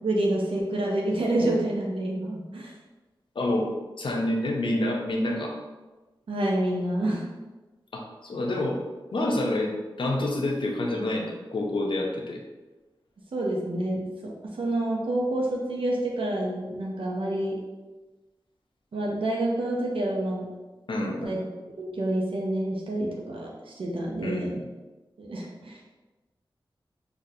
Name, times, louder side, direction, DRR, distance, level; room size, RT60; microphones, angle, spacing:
voice 1, 0.0-2.7 6.3-7.3 13.3-17.6 18.9-20.5 21.2-21.4 21.8-24.5 25.2-25.8, right 1 dB, 90° right, -2 dB, 0.6 m, -28 dB
voice 2, 3.4-3.7 4.0-5.6 7.9-8.8 9.1-12.4 20.9-21.4 24.2-24.7, left 1 dB, 70° left, 0 dB, 0.6 m, -28 dB
4.0 x 2.6 x 2.6 m, 1.2 s
wide cardioid pair, 70°, 9 cm